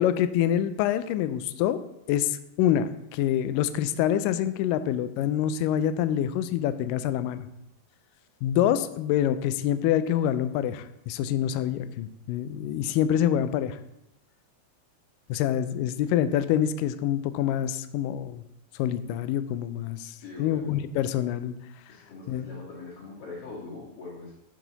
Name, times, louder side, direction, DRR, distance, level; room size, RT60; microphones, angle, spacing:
voice 1, 0.0-1.8 2.1-7.5 8.4-13.8 15.3-18.4 18.8-21.5 22.3-22.5, left 10 dB, 85° left, 12 dB, 2.0 m, -26 dB
voice 2, 20.1-21.0 21.9-24.3, left 3 dB, 45° left, -8 dB, 2.4 m, -42 dB
12.5 x 4.9 x 4.0 m, 0.86 s
omnidirectional pair, 4.3 m